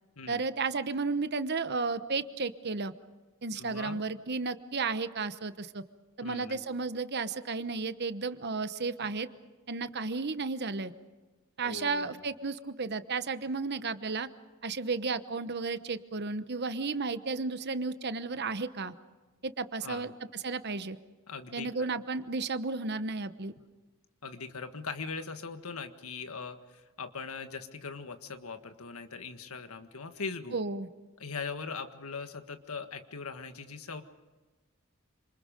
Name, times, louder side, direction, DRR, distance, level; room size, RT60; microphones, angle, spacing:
voice 1, 0.3-2.9 3.4-5.8 6.2-9.3 9.7-10.9 11.6-14.3 14.6-18.9 19.4-21.0 21.5-23.5 30.5-30.9, right 4 dB, 50° right, 11 dB, 1.0 m, -33 dB
voice 2, 3.6-4.0 6.2-6.6 11.6-12.2 19.8-20.1 21.3-22.0 24.2-30.6 31.2-34.0, left 4 dB, 90° left, 8 dB, 1.7 m, -40 dB
28.0 x 26.5 x 5.2 m, 1.2 s
head